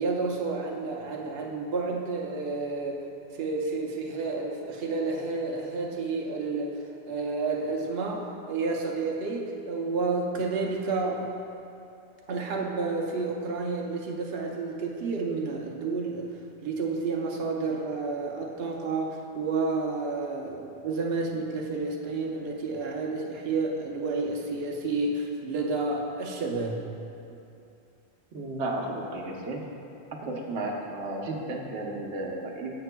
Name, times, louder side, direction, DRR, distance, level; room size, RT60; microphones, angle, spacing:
voice 1, 0.0-3.0 3.3-6.8 7.1-11.3 12.3-16.3 16.6-26.8, right 3 dB, 65° right, -1 dB, 0.9 m, -30 dB
voice 2, 28.3-29.6 30.2-32.7, right 2 dB, 90° right, 0 dB, 1.2 m, -33 dB
14.5 x 5.9 x 2.2 m, 2.7 s
omnidirectional pair, 1.1 m